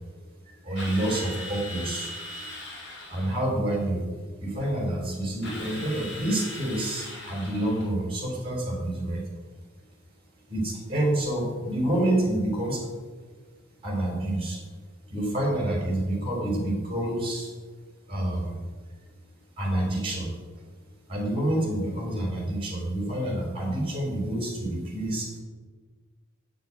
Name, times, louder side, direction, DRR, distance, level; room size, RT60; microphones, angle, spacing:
voice 1, 0.4-2.5 3.1-4.0 4.4-9.2 10.5-12.9 13.8-14.6 15.1-17.5 18.1-18.6 19.6-20.6 21.1-25.4, right 1 dB, 25° right, -1 dB, 4.9 m, -28 dB
Drill, 0.8-3.5 5.4-7.9, left 1 dB, 60° left, 5.0 m, -39 dB
9.3 x 9.3 x 9.2 m, 1.4 s
head